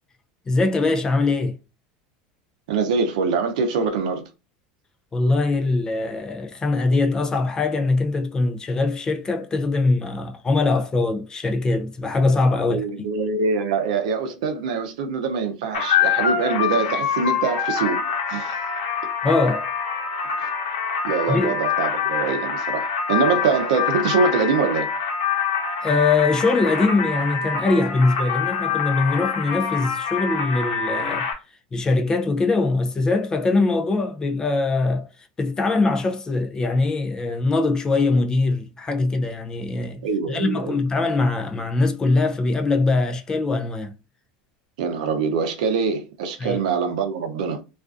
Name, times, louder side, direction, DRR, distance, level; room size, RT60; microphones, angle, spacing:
voice 1, 0.5-1.6 5.1-12.8 19.2-19.7 21.3-21.6 25.8-31.3 31.7-35.1 35.4-40.0 40.3-43.9 46.4-46.6, left 3 dB, 20° left, 0.4 m, -22 dB
voice 2, 2.7-4.3 12.6-18.6 20.4-20.5 21.0-24.9 40.0-40.8 44.8-47.6, right 5 dB, 80° right, 0.5 m, -24 dB
sound 1, 15.7-31.3, left 7 dB, 85° left, 0.9 m, -25 dB
2.4 x 2.3 x 2.4 m
supercardioid pair, 125°, 4 cm